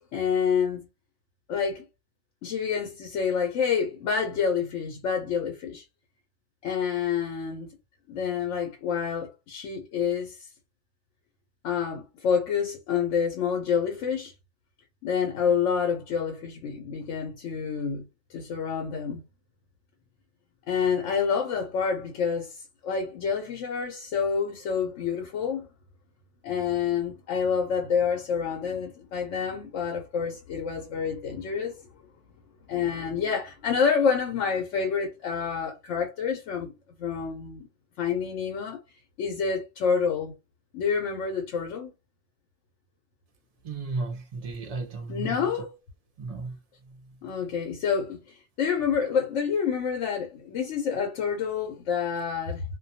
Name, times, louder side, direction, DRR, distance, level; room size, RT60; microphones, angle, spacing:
voice 1, 0.1-0.9 1.5-1.8 2.4-5.8 6.6-7.7 8.1-10.5 11.6-14.3 15.0-18.0 18.3-19.2 20.7-22.6 22.8-25.7 26.4-31.7 32.7-36.7 37.0-37.7 38.0-38.8 39.2-40.3 40.7-41.9 45.1-45.7 47.2-52.6, left 6 dB, 90° left, 1.0 m, -28 dB
voice 2, 43.6-45.6 46.2-47.2, right 3 dB, 55° right, 0.4 m, -35 dB
2.3 x 2.2 x 2.6 m
omnidirectional pair, 1.2 m